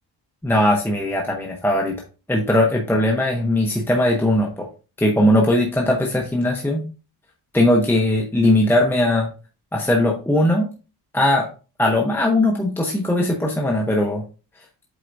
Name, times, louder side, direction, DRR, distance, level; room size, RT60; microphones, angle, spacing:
voice 1, 0.4-1.9 2.3-4.7 5.0-6.8 7.5-9.3 9.7-10.7 11.1-11.5 11.8-14.2, left 1 dB, 5° left, 0 dB, 0.9 m, -19 dB
7.8 x 4.7 x 2.6 m, 0.33 s
wide cardioid pair, 150°, 39 cm